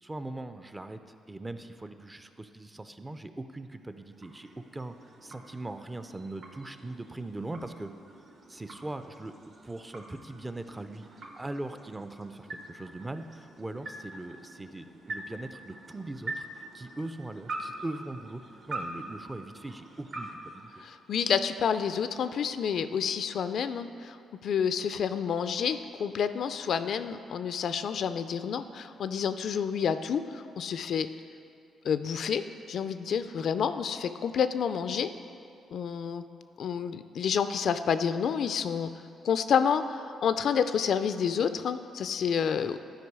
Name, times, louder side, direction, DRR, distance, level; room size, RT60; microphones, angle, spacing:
voice 1, 0.0-5.0 5.2-7.9 8.5-9.3 9.6-18.4 18.7-20.8, right 2 dB, 15° right, 9 dB, 0.4 m, -40 dB
sound 1, 3.6-21.4, right 2 dB, 55° right, 1.1 m, -44 dB
voice 2, 20.8-24.2 24.4-31.1 31.8-35.1 35.7-36.2 36.6-38.9 39.2-42.8, left 7 dB, 65° left, 11 dB, 0.3 m, -29 dB
11.5 x 4.7 x 4.7 m, 2.6 s
cardioid pair, 90°, 0 cm